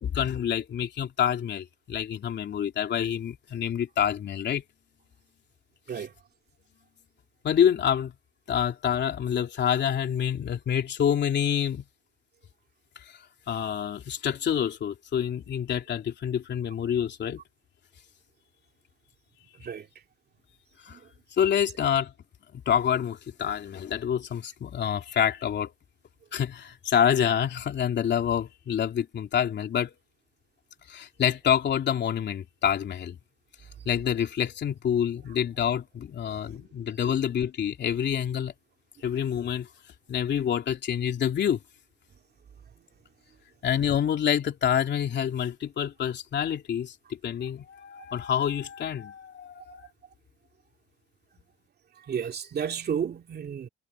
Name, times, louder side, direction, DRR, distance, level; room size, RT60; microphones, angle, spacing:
voice 1, 0.0-4.6 5.9-6.0 7.4-8.1 8.5-11.8 13.5-17.4 20.9-21.0 21.4-22.1 22.5-25.7 26.3-29.9 30.9-33.2 33.8-38.5 39.0-39.7 40.1-41.6 43.6-46.9 47.2-49.9, left 9 dB, 60° left, 3.2 m, -27 dB
voice 2, 52.1-53.7, right 7 dB, 55° right, 2.8 m, -32 dB
cardioid pair, 90°, 20 cm